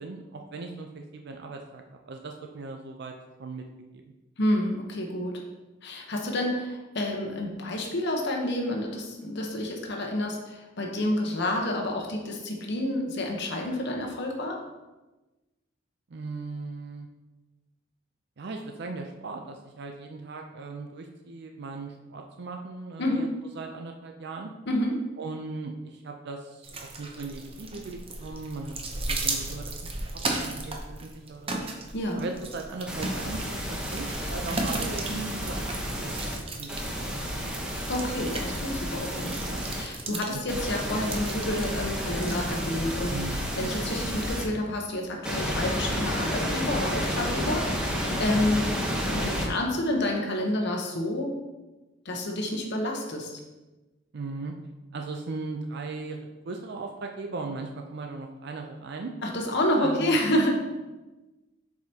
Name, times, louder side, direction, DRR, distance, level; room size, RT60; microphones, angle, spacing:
voice 1, 0.0-3.1 3.4-3.6 3.9-4.0 16.1-17.1 18.4-23.3 23.5-24.5 25.2-29.8 30.1-31.7 32.1-37.1 37.4-37.5 43.1-43.5 54.1-54.5 54.9-59.1 59.8-60.2, right 3 dB, 60° right, 3 dB, 0.5 m, -38 dB
voice 2, 4.4-5.4 5.8-14.6 23.0-23.3 24.7-25.0 31.9-32.3 37.9-48.7 49.1-51.3 52.0-53.4 59.2-60.5, left 1 dB, 65° left, 1 dB, 0.9 m, -29 dB
sound 1, 26.6-42.7, right 2 dB, 30° right, 0.7 m, -36 dB
sound 2, 32.9-36.4 36.7-39.8 40.5-44.4 45.2-49.5, equal, 5° right, 1.0 m, -31 dB
7.6 x 4.8 x 2.8 m, 1.1 s
head